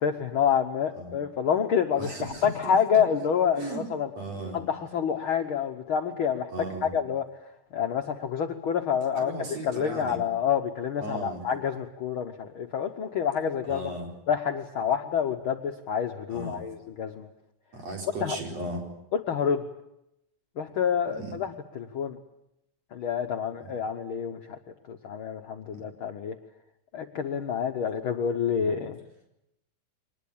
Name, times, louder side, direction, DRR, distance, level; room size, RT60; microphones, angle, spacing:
voice 1, 0.0-4.1 4.5-6.5 6.8-7.2 7.7-9.3 9.6-13.8 14.3-17.3 18.2-18.4 19.1-19.6 20.6-22.2 22.9-24.6 24.9-26.3 26.9-29.0, left 7 dB, 60° left, 5 dB, 1.4 m, -28 dB
voice 2, 1.9-2.8 3.6-3.9 4.2-4.6 6.5-6.9 9.2-10.2 11.0-11.4 13.6-14.1 16.3-16.6 17.7-18.8 21.1-21.3 23.6-23.7 25.7-25.8 28.6-28.7, right 2 dB, 55° right, 1 dB, 5.6 m, -36 dB
23.5 x 20.0 x 8.6 m, 0.83 s
omnidirectional pair, 3.5 m